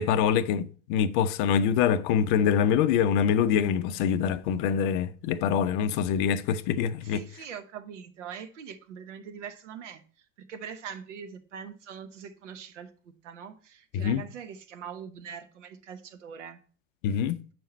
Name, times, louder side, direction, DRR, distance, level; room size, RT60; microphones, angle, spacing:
voice 1, 0.0-7.2 13.9-14.2 17.0-17.4, left 8 dB, 40° left, 0.5 m, -25 dB
voice 2, 7.0-10.0 10.5-12.9 13.2-16.6, right 7 dB, 60° right, 0.9 m, -42 dB
7.5 x 5.6 x 4.2 m
figure-of-eight pair, 80°, 41 cm